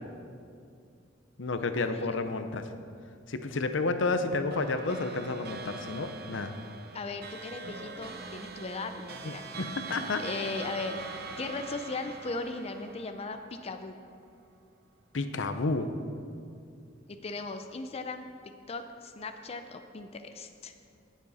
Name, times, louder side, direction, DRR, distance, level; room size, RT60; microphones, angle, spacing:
voice 1, 1.4-2.7 3.3-6.5 9.2-10.2 15.1-15.9, left 3 dB, 80° left, 8 dB, 0.7 m, -31 dB
sound 1, 4.5-14.1, right 3 dB, 55° right, 0.8 m, -43 dB
voice 2, 6.9-9.5 10.2-11.0 11.4-13.9 17.1-20.7, left 3 dB, 35° left, 7 dB, 0.5 m, -38 dB
18.0 x 7.3 x 4.2 m, 2.4 s
head